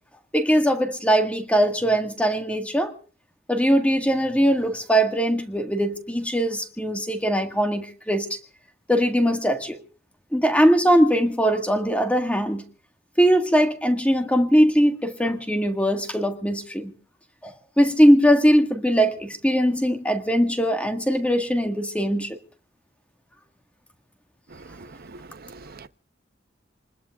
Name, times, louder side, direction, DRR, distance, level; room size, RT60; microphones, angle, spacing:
voice 1, 0.3-2.9 3.5-8.3 8.9-9.8 10.3-12.6 13.2-16.9 17.4-22.4, equal, 5° left, 1.7 m, -21 dB
voice 2, 24.8-25.2 25.4-25.9, right 3 dB, 50° right, 0.8 m, -43 dB
27.5 x 20.5 x 2.4 m
head